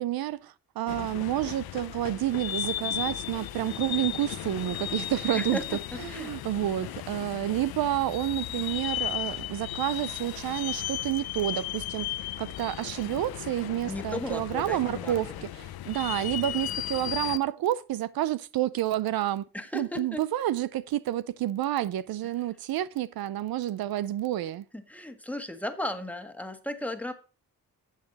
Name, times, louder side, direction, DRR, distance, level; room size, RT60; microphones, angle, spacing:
voice 1, 0.0-5.6 6.0-12.1 12.4-19.5 19.7-24.7, right 13 dB, 75° right, 0.6 m, -29 dB
sound 1, 0.9-17.4, left 13 dB, 85° left, 0.7 m, -35 dB
voice 2, 5.3-5.8 6.1-6.5 13.9-15.2 15.6-15.7 19.5-20.2 24.7-27.1, left 1 dB, 5° left, 1.5 m, -35 dB
10.5 x 7.4 x 4.0 m
cardioid pair, 65°, 36 cm